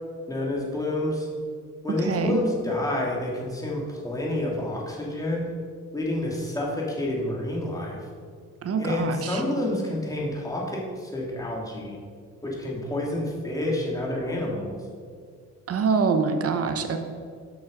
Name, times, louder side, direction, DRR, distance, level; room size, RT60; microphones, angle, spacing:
voice 1, 0.3-1.3 1.8-5.5 5.9-8.0 8.8-12.0 12.4-14.8, left 1 dB, 10° left, -3 dB, 2.2 m, -28 dB
voice 2, 2.0-2.4 8.6-9.4 15.7-17.0, right 5 dB, 50° right, 7 dB, 1.0 m, -25 dB
7.5 x 6.3 x 5.2 m, 2.1 s
cardioid pair, 90°, 30 cm